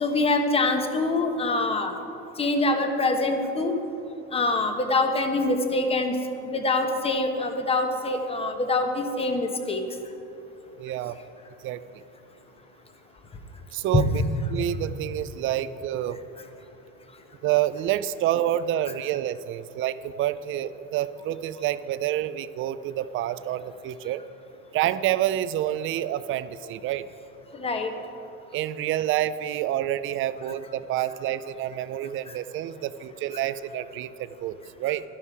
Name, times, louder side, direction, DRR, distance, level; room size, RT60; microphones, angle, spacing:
voice 1, 0.0-1.9 2.4-3.7 4.3-6.1 6.5-9.8 13.9-14.0 27.6-27.9, left 2 dB, 20° left, 6 dB, 1.1 m, -24 dB
voice 2, 10.8-11.2 11.6-11.8 13.7-14.2 14.5-16.2 17.4-24.2 24.7-27.1 28.5-35.0, right 12 dB, 40° right, 14 dB, 0.4 m, -28 dB
12.0 x 11.0 x 4.8 m, 2.9 s
cardioid pair, 135°, 30 cm